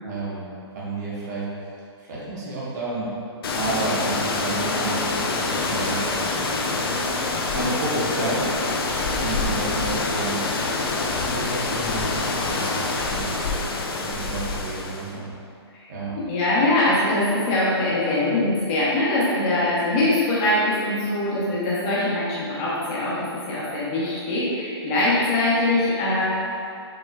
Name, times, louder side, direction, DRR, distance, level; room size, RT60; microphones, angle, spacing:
voice 1, 0.0-0.5 0.7-1.4 2.0-3.1 3.5-6.1 7.5-8.5 9.2-10.4 11.2-13.4 14.0-15.3 15.9-16.1, right 2 dB, 40° right, -7 dB, 1.2 m, -31 dB
sound 1, 3.4-15.1, left 3 dB, 55° left, 0.5 m, -26 dB
voice 2, 15.8-26.2, left 2 dB, 25° left, -8 dB, 1.0 m, -22 dB
5.4 x 3.0 x 2.3 m, 2.5 s
hypercardioid pair, 160°, 14 cm